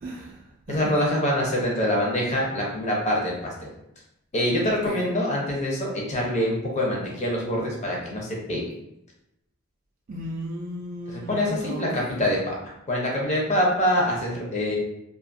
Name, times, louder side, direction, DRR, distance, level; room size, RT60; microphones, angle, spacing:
voice 1, 0.0-0.9 4.8-5.1 10.1-12.3, equal, 40° right, -4 dB, 0.3 m, -35 dB
voice 2, 0.7-3.5 4.3-8.6 11.3-12.6 12.9-14.8, left 1 dB, 30° left, -3 dB, 0.6 m, -25 dB
2.5 x 2.4 x 2.5 m, 0.84 s
head